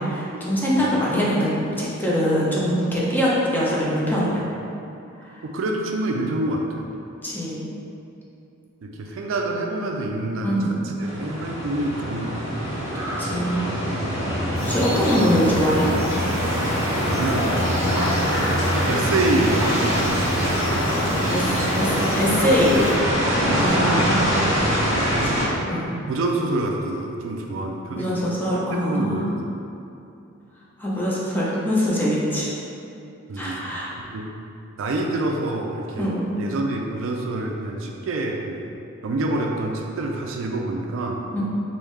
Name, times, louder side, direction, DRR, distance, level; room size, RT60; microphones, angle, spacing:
voice 1, 0.0-4.4 5.2-5.4 7.2-7.6 10.4-10.7 13.2-13.6 14.6-15.9 21.3-21.5 21.8-21.9 22.2-22.8 23.5-24.3 24.7-24.8 25.2-25.9 28.0-29.2 30.8-32.5 33.4-33.9 36.0-36.3 41.3-41.4, equal, 10° left, -7 dB, 0.6 m, -23 dB
voice 2, 5.4-6.6 8.8-12.4 17.0-18.1 18.9-20.5 23.4-24.5 24.8-25.4 26.1-28.2 28.7-29.5 33.3-33.7 34.1-34.3 34.8-38.7 39.0-41.2, right 2 dB, 70° right, 1 dB, 0.4 m, -27 dB
sound 1, 11.0-25.5, equal, 15° right, 0.9 m, -24 dB
sound 2, 14.5-23.0, equal, 70° left, 0.7 m, -30 dB
3.5 x 2.6 x 3.2 m, 2.7 s
head